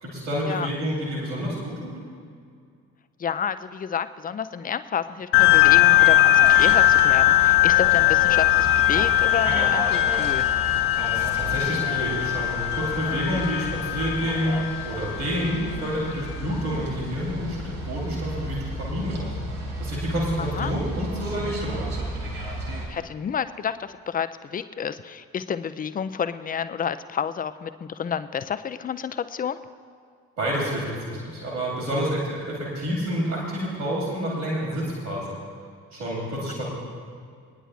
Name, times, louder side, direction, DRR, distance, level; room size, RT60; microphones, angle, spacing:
voice 1, 0.0-2.0 11.0-14.6 14.8-19.3 19.8-21.9 30.4-35.4 35.9-36.7, equal, 75° right, -10 dB, 2.8 m, -28 dB
voice 2, 3.2-10.5 20.4-20.7 22.9-29.6, left 7 dB, 20° left, 12 dB, 0.4 m, -30 dB
sound 1, 5.3-16.2, left 14 dB, 65° left, 0.7 m, -20 dB
sound 2, 6.4-22.9, right 1 dB, 60° right, 3.0 m, -34 dB
26.5 x 9.9 x 2.4 m, 2.2 s
figure-of-eight pair, 40°, 45 cm